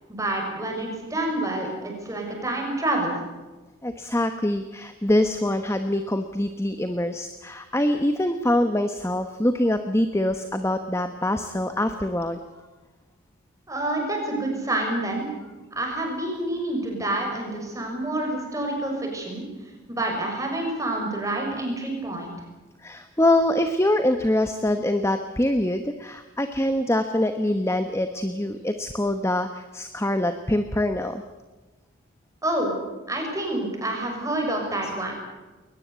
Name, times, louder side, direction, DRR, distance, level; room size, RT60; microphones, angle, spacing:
voice 1, 0.1-3.2 13.7-15.3 15.7-19.4 19.9-22.3 32.4-32.7 33.1-35.1, right 1 dB, 15° right, 1 dB, 6.3 m, -28 dB
voice 2, 3.8-12.4 15.9-16.0 22.8-31.2, left 1 dB, 15° left, 8 dB, 1.0 m, -24 dB
22.0 x 20.0 x 8.2 m, 1.2 s
head